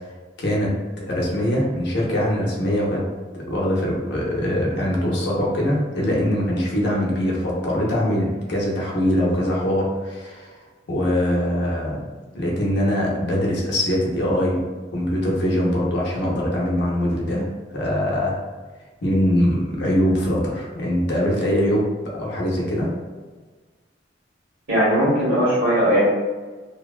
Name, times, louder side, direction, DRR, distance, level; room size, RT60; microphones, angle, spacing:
voice 1, 0.4-3.0 3.3-10.5 10.9-12.1 12.3-14.7 14.9-18.4 19.0-21.9 22.1-22.9, equal, 65° left, -3 dB, 0.7 m, -22 dB
voice 2, 24.7-26.0, equal, 70° right, -10 dB, 1.2 m, -19 dB
2.7 x 2.1 x 2.4 m, 1.4 s
head